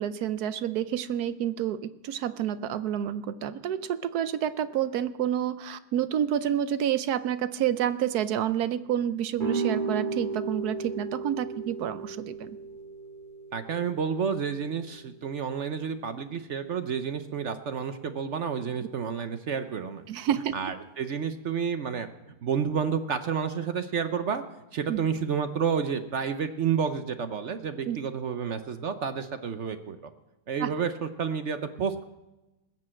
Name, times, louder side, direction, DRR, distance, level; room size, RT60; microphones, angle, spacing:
voice 1, 0.0-12.6 20.1-20.5 24.9-25.0 27.9-28.0 30.6-30.7, right 10 dB, 75° right, 13 dB, 1.2 m, -29 dB
sound 1, 9.4-15.1, right 4 dB, 30° right, 1.8 m, -34 dB
voice 2, 13.5-20.0 20.5-22.1 22.4-24.4 24.7-30.1 30.5-32.1, right 6 dB, 55° right, 9 dB, 0.9 m, -30 dB
20.5 x 7.6 x 7.6 m, 1.0 s
omnidirectional pair, 1.7 m